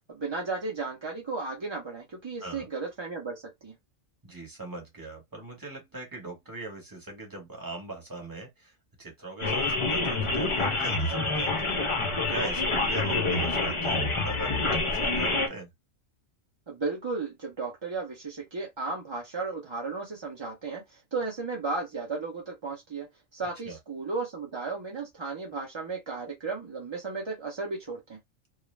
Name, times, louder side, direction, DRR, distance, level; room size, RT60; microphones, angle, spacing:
voice 1, 0.1-3.7 16.7-23.1 23.3-28.2, right 3 dB, 45° right, 0.3 m, -34 dB
voice 2, 4.2-11.8 12.3-15.7 23.4-23.8, right 2 dB, 20° right, 0.9 m, -40 dB
sound 1, 9.4-15.5, left 3 dB, 40° left, 0.4 m, -27 dB
2.3 x 2.1 x 3.1 m
omnidirectional pair, 1.4 m